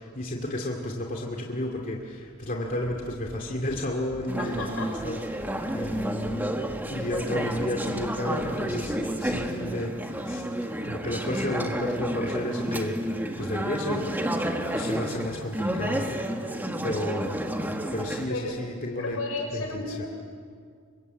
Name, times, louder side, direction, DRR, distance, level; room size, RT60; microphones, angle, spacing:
voice 1, 0.0-6.6 6.9-10.4 10.8-13.0 13.4-17.4 17.9-19.2 19.5-20.0, left 1 dB, 40° left, 0 dB, 2.5 m, -32 dB
sound 1, 3.2-3.4 3.7-3.8 4.1-4.2 4.5-4.7 5.0-5.1 5.4-5.5 5.8-6.4 6.7-6.8 7.1-7.2 7.5-7.7 8.0-8.1 8.4-8.5 8.8-9.0 9.2-9.5, right 1 dB, 45° right, 6.0 m, -43 dB
Conversation / Chatter, 4.3-18.3, right 1 dB, 10° right, 1.6 m, -31 dB
voice 2, 4.4-5.0 18.3-18.6 19.0-20.1, left 3 dB, 75° left, 2 dB, 6.1 m, -33 dB
27.0 x 23.5 x 8.3 m, 2.1 s
head